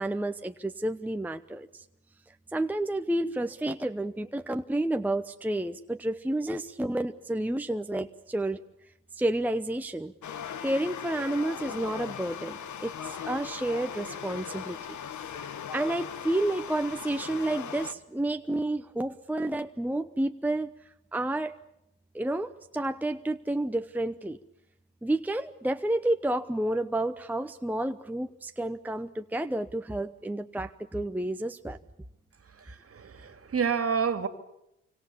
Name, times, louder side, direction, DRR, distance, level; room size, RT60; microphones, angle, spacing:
voice 1, 0.0-1.8 2.3-8.6 9.1-10.1 10.6-14.8 15.4-20.7 21.1-21.6 22.1-24.4 25.0-31.8, right 1 dB, 5° right, 8 dB, 0.9 m, -30 dB
sound 1, 10.2-17.9, left 8 dB, 55° left, 1.5 m, -39 dB
voice 2, 32.4-34.3, right 6 dB, 40° right, 9 dB, 2.4 m, -29 dB
27.5 x 25.5 x 7.2 m, 0.84 s
hypercardioid pair, 55°, 35 cm